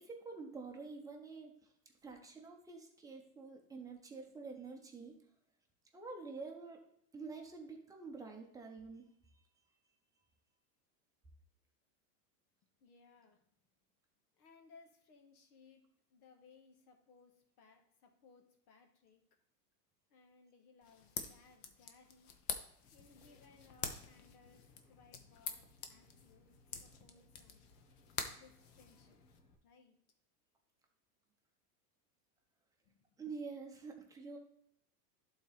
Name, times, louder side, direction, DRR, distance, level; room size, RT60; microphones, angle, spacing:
voice 1, 0.0-1.5 2.0-5.2 5.9-6.8 7.1-9.1 33.2-34.4, right 4 dB, 5° right, 1 dB, 0.8 m, -48 dB
voice 2, 12.8-13.5 14.3-15.8 16.1-19.2 20.1-22.3 22.9-27.6 28.2-29.2 29.6-30.0 32.8-33.2, left 4 dB, 65° left, 3 dB, 1.7 m, -64 dB
sound 1, 20.8-29.4, left 6 dB, 25° left, 0.3 m, -47 dB
Aircraft, 22.8-29.5, left 3 dB, 90° left, 1.6 m, -67 dB
11.5 x 4.0 x 3.4 m, 0.71 s
supercardioid pair, 145°, 47 cm